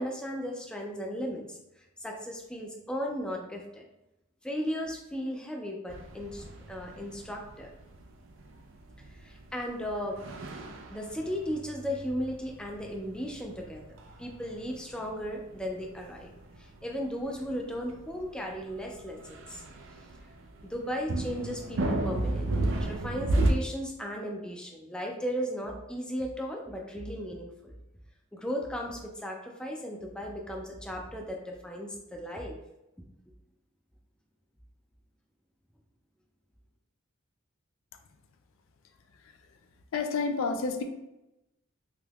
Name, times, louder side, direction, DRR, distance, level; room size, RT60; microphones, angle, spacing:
voice 1, 0.0-1.6 2.0-3.8 4.4-7.7 9.1-10.2 10.9-16.3 16.6-19.6 20.6-27.8 28.3-32.6, equal, 5° left, 0 dB, 0.4 m, -36 dB
sound 1, 5.9-23.5, right 2 dB, 65° right, 0.4 m, -35 dB
voice 2, 39.9-40.8, left 4 dB, 75° left, 6 dB, 0.3 m, -30 dB
3.4 x 2.9 x 2.3 m, 0.93 s
head